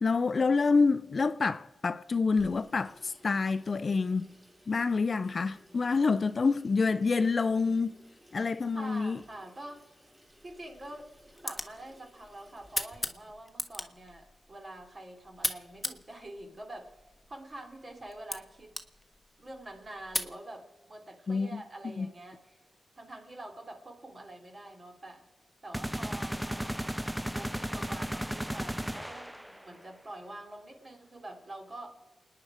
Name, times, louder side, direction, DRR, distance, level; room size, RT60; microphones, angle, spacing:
voice 1, 0.0-4.2 4.7-8.0 8.3-9.2 21.3-21.6 22.0-22.1, left 4 dB, 50° left, 0.5 m, -27 dB
Water tap faucet / Sink (filling or washing), 2.3-13.0, equal, 20° right, 3.7 m, -59 dB
voice 2, 8.7-9.8 10.4-11.1 11.4-17.0 17.3-18.8 19.4-22.6 22.9-25.2 25.6-31.9, right 1 dB, 40° right, 3.2 m, -46 dB
sound 1, 10.3-20.4, left 1 dB, 15° left, 1.3 m, -40 dB
sound 2, 25.7-29.7, equal, 5° right, 0.5 m, -35 dB
28.5 x 9.9 x 4.9 m
cardioid pair, 65°, 0 cm